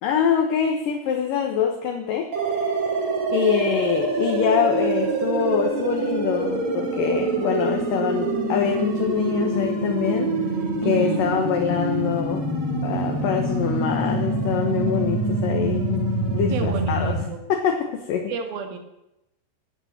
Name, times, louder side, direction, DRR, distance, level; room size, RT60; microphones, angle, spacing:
voice 1, 0.0-2.7 3.3-10.3 10.6-12.5 12.8-17.1 17.5-18.3, left 8 dB, 70° left, 3 dB, 2.8 m, -25 dB
sound 1, 2.3-17.2, right 2 dB, 45° right, 3.8 m, -25 dB
voice 2, 10.8-11.2 16.5-17.5 18.3-18.8, right 8 dB, 70° right, 6 dB, 3.5 m, -30 dB
19.0 x 9.1 x 7.4 m, 0.89 s
omnidirectional pair, 4.4 m